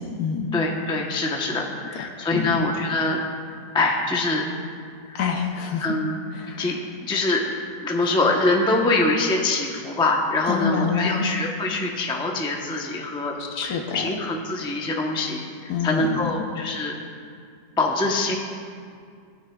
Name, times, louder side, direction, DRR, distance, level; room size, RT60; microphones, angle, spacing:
voice 1, 0.0-0.6 2.3-2.6 5.1-5.8 6.3-6.6 10.5-11.3 13.4-14.1 15.7-16.2, left 6 dB, 65° left, 4 dB, 1.3 m, -26 dB
voice 2, 0.5-3.2 3.7-4.4 5.1-5.2 5.8-6.1 6.6-6.7 7.1-7.5 7.8-17.0 17.8-18.3, left 2 dB, 5° left, 0 dB, 0.5 m, -24 dB
16.5 x 9.5 x 2.3 m, 2.2 s
omnidirectional pair, 1.8 m